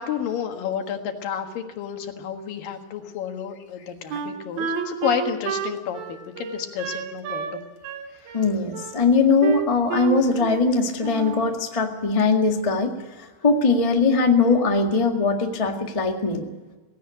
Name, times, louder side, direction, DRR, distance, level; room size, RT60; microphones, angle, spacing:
voice 1, 0.0-7.6 8.2-8.3, left 8 dB, 75° left, 5 dB, 3.2 m, -30 dB
Wind instrument woodwind instrument, 4.1-7.6 7.8-9.0 9.4-10.7 11.0-11.5, right 7 dB, 85° right, 3.5 m, -30 dB
voice 2, 8.3-12.9 13.4-16.5, left 4 dB, 20° left, 2 dB, 0.8 m, -20 dB
17.5 x 17.0 x 9.8 m, 1.3 s
omnidirectional pair, 4.1 m